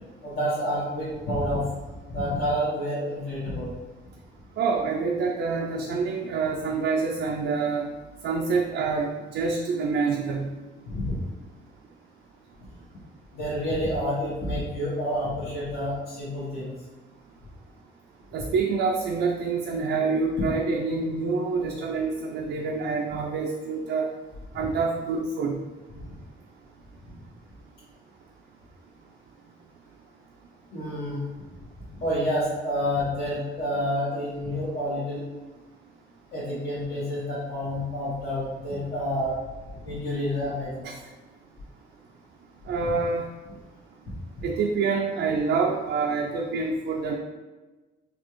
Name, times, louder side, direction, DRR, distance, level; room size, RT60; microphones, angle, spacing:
voice 1, 0.2-1.6 2.1-3.7 10.9-11.2 13.3-16.7 30.7-31.2 32.0-35.2 36.3-39.3 39.8-40.9 42.8-42.9, equal, 60° left, -10 dB, 1.2 m, -28 dB
voice 2, 4.6-7.9 8.2-10.5 18.3-24.1 24.5-25.6 40.8-41.0 42.7-43.3 44.4-47.2, right 4 dB, 70° right, 1 dB, 0.4 m, -26 dB
4.1 x 2.5 x 3.0 m, 1.2 s
cardioid pair, 90°, 20 cm